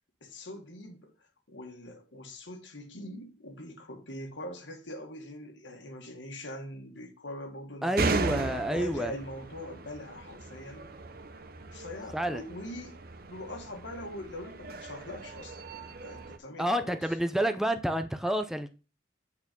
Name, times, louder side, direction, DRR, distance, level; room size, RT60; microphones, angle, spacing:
voice 1, 0.2-1.1 1.5-8.3 8.7-10.9 11.7-13.0 13.3-17.2, left 1 dB, 85° left, 1.9 m, -43 dB
voice 2, 7.8-9.1 12.1-12.4 16.6-18.7, right 1 dB, ahead, 0.5 m, -29 dB
sound 1, 8.0-16.4, right 3 dB, 55° right, 0.8 m, -37 dB
8.4 x 4.6 x 5.3 m
head